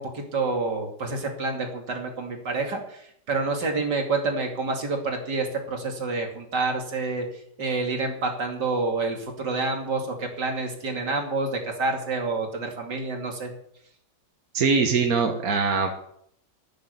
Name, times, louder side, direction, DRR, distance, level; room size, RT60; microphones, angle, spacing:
voice 1, 0.0-3.0 3.3-7.2 7.6-13.5, right 3 dB, 75° right, 2 dB, 3.2 m, -28 dB
voice 2, 14.5-15.9, right 4 dB, 60° right, 4 dB, 1.7 m, -22 dB
12.0 x 9.3 x 8.3 m, 0.70 s
omnidirectional pair, 1.9 m